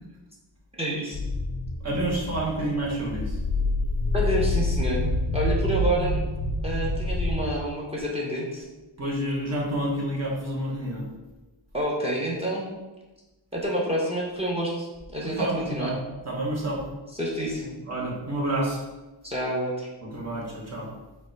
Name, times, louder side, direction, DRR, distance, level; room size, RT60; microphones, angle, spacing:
voice 1, 0.8-1.2 4.1-5.1 5.3-6.2 6.6-8.6 11.7-12.7 13.5-15.9 17.1-17.7 19.2-19.9, right 1 dB, 15° right, -2 dB, 0.9 m, -28 dB
sound 1, 1.1-7.5, left 2 dB, 30° left, 0.4 m, -27 dB
voice 2, 1.8-3.4 9.0-11.1 15.2-16.0 16.2-16.8 17.9-18.8 20.0-20.9, right 1 dB, 35° right, -3 dB, 1.2 m, -29 dB
5.1 x 2.3 x 4.5 m, 1.1 s
wide cardioid pair, 100°, 47 cm